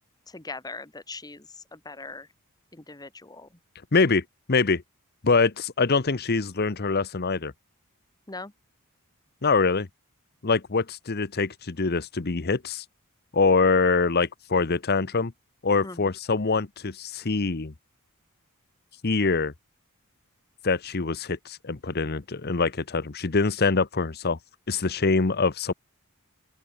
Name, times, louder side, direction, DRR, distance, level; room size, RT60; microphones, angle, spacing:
voice 1, 0.3-2.3 2.7-3.5 8.3-8.5 15.8-16.1, left 3 dB, 15° left, 1.4 m, -40 dB
voice 2, 3.9-4.8 5.2-7.5 9.4-9.9 10.4-12.8 13.3-15.3 15.6-17.7 19.0-19.5 20.6-24.4 24.7-25.7, left 4 dB, 45° left, 0.9 m, -24 dB
open air
head